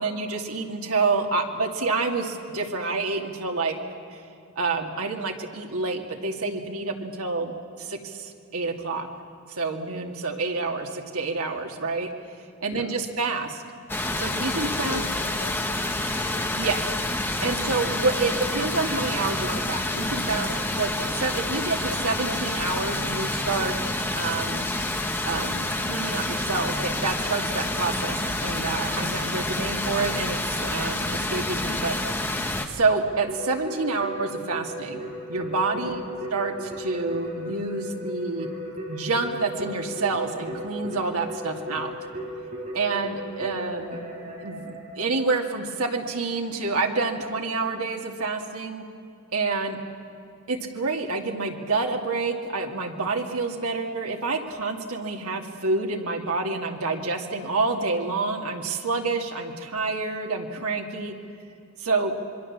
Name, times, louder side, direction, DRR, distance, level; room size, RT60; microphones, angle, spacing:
voice 1, 0.0-3.8 4.1-4.2 4.6-7.5 7.8-9.1 9.5-12.1 12.6-13.6 14.2-15.0 16.6-16.8 17.4-24.7 25.2-32.0 32.6-35.0 35.3-36.0 36.3-38.5 38.9-41.9 42.7-44.0 44.4-48.9 49.3-49.8 50.5-61.1 61.8-62.1, right 3 dB, 80° right, 2 dB, 2.4 m, -28 dB
voice 2, 12.7-13.1 14.6-16.6 35.6-36.0, left 2 dB, 85° left, 0 dB, 3.1 m, -42 dB
sound 1, 13.9-32.7, left 1 dB, 10° left, 1.3 m, -28 dB
Keyboard (musical), 33.3-45.7, equal, 35° right, 5.9 m, -36 dB
26.5 x 22.5 x 7.5 m, 2.6 s
head